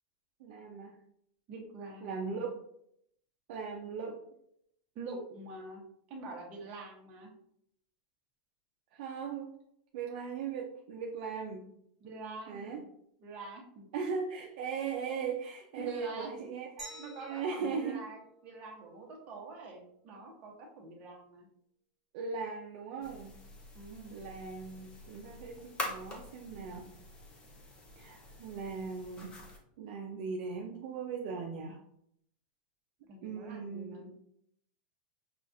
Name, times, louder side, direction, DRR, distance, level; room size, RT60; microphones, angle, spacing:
voice 1, 0.4-1.0 2.0-2.5 3.5-4.2 8.9-9.6 9.9-11.7 12.5-12.8 13.9-18.0 22.1-23.3 24.1-26.9 28.0-29.4 29.8-31.8 33.2-34.1, right 5 dB, 55° right, 0 dB, 0.5 m, -39 dB
voice 2, 1.5-2.4 4.9-5.8 6.1-7.3 12.0-12.8 13.2-13.9 15.8-16.4 17.0-21.5 23.7-24.2 33.1-34.1, right 2 dB, 30° right, -1 dB, 0.9 m, -45 dB
Glass, 16.8-19.5, right 1 dB, 5° right, 1.2 m, -52 dB
sound 1, 23.0-29.6, left 2 dB, 20° left, 0.6 m, -46 dB
5.5 x 2.3 x 2.6 m, 0.72 s
supercardioid pair, 160°, 5 cm